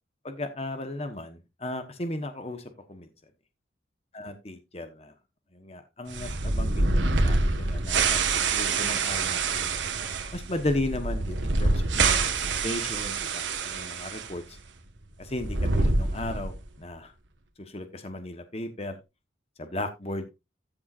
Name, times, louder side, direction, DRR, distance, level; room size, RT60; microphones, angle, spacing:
voice 1, 0.2-3.1 4.1-5.1 5.5-9.7 10.3-14.6 15.2-17.1 17.6-19.0 19.6-20.3, left 1 dB, 35° left, 8 dB, 1.1 m, -35 dB
sound 1, 6.1-14.3 14.6-14.7 15.3-16.7, right 3 dB, 80° right, 1.4 m, -26 dB
14.0 x 7.1 x 2.5 m, 0.24 s
head